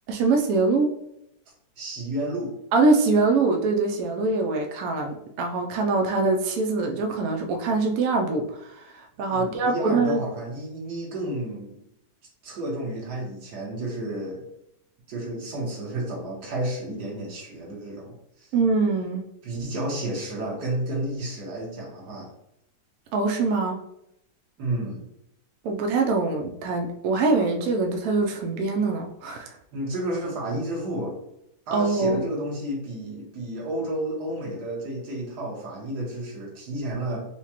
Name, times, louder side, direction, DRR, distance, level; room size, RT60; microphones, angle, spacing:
voice 1, 0.1-0.9 2.7-10.2 18.5-19.2 23.1-23.8 25.6-29.6 31.7-32.2, right 3 dB, 80° right, 3 dB, 0.8 m, -23 dB
voice 2, 1.8-2.5 9.3-11.8 12.4-14.5 15.1-18.5 19.4-22.3 24.6-25.0 29.7-31.1 31.7-37.2, right 1 dB, 60° right, -3 dB, 1.6 m, -31 dB
4.7 x 2.1 x 2.9 m, 0.78 s
omnidirectional pair, 2.1 m